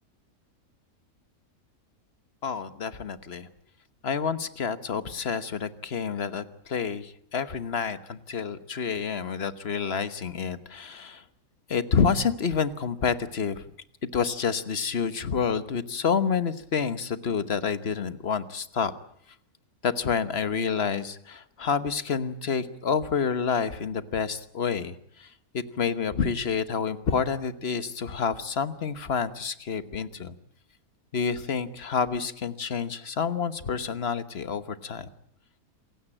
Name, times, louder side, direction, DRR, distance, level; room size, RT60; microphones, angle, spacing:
voice 1, 2.4-3.5 4.0-11.2 11.7-13.6 14.0-18.9 19.8-30.3 31.1-35.1, left 6 dB, 45° left, 13 dB, 1.4 m, -28 dB
27.0 x 16.5 x 8.9 m, 0.70 s
omnidirectional pair, 1.6 m